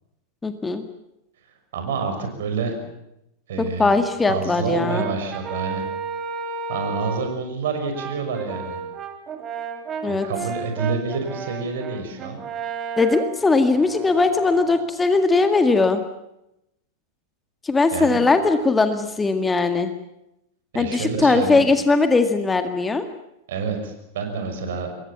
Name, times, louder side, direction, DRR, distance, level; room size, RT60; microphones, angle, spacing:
voice 1, 0.4-0.8 3.6-5.0 10.0-10.3 13.0-16.0 17.6-19.9 20.7-23.0, left 3 dB, 10° left, 8 dB, 1.9 m, -19 dB
voice 2, 1.7-2.7 3.5-3.9 4.3-5.8 6.7-8.8 10.0-12.4 17.9-18.2 20.7-21.7 23.5-24.9, right 5 dB, 60° right, 5 dB, 5.9 m, -28 dB
Brass instrument, 4.8-7.3 7.9-14.9, right 6 dB, 25° right, 3.3 m, -33 dB
26.0 x 22.0 x 7.2 m, 0.87 s
figure-of-eight pair, 90°, 0 cm